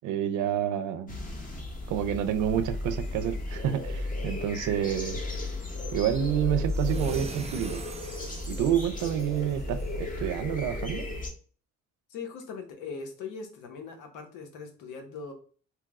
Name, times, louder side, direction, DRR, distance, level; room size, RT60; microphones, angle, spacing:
voice 1, 0.0-1.1 1.9-5.2 5.9-7.8 8.5-11.0, right 10 dB, 85° right, 0.5 m, -28 dB
sound 1, 1.1-11.3, left 2 dB, 25° left, 0.8 m, -34 dB
sound 2, 6.7-10.0, right 3 dB, 20° right, 0.4 m, -42 dB
voice 2, 12.1-15.3, left 5 dB, 90° left, 0.8 m, -40 dB
3.0 x 2.0 x 3.4 m
cardioid pair, 90°, 30 cm